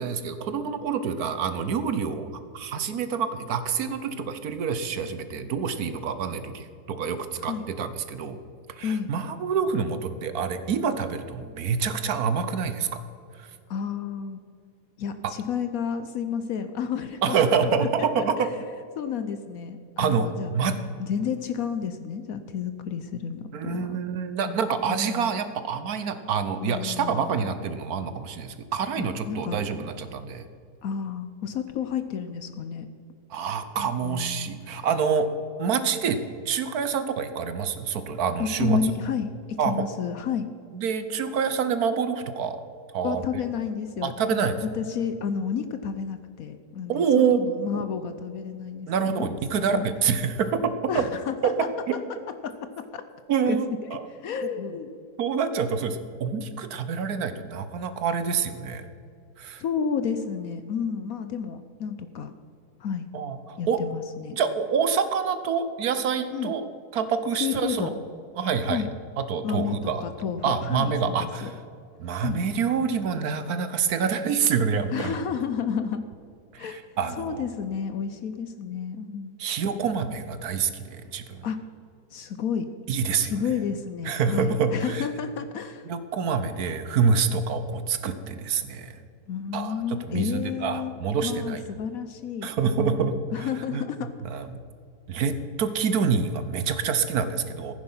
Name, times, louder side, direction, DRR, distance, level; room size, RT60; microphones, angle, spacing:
voice 1, 0.0-2.3 2.5-8.4 8.7-12.9 13.4-13.5 17.2-18.5 20.0-20.3 20.5-20.8 23.5-30.5 33.3-35.3 35.6-36.2 36.5-38.8 39.6-39.7 40.7-42.6 42.9-43.2 44.0-44.6 46.9-47.4 48.9-51.0 53.3-53.6 53.9-54.0 55.2-58.9 59.4-59.6 63.1-63.8 64.3-66.6 66.9-67.9 68.4-68.8 69.2-70.0 70.4-71.5 72.0-75.2 76.5-77.5 79.4-81.4 82.9-83.3 84.0-85.0 85.9-89.0 89.5-91.6 92.4-93.1 93.4-93.8 94.2-94.5 95.1-97.7, right 6 dB, 65° right, 10 dB, 1.3 m, -27 dB
voice 2, 8.8-9.1 13.7-14.4 15.0-17.4 17.6-18.1 18.4-18.5 19.0-20.5 21.0-24.0 24.4-25.3 26.6-27.5 29.0-29.6 30.8-32.9 33.8-34.9 38.4-40.5 43.0-44.4 44.7-47.0 47.3-49.3 49.7-49.9 50.9-51.7 52.3-53.0 53.5-53.6 53.9-54.9 59.6-62.3 62.8-63.1 63.6-64.3 66.3-66.5 67.4-67.9 68.6-68.9 69.4-71.5 72.2-72.4 74.9-76.0 76.6-76.8 77.2-79.4 81.4-81.6 82.1-82.7 83.2-85.9 89.3-90.9 91.2-92.5 92.8-94.4, left 7 dB, 65° left, 10 dB, 1.0 m, -31 dB
15.0 x 9.6 x 5.6 m, 2.3 s
omnidirectional pair, 1.8 m